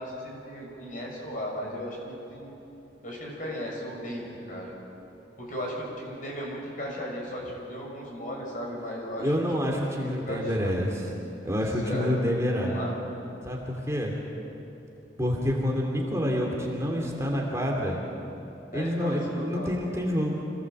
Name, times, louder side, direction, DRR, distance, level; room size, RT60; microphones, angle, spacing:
voice 1, 0.0-2.5 3.0-4.7 5.4-9.3 10.0-10.7 11.8-12.3 12.6-13.0 18.7-19.7, equal, 50° left, -2 dB, 6.2 m, -36 dB
voice 2, 9.2-11.0 11.4-12.8 13.4-14.1 15.2-18.0 18.7-20.4, equal, 15° right, -1 dB, 2.7 m, -27 dB
26.5 x 17.5 x 7.8 m, 2.8 s
head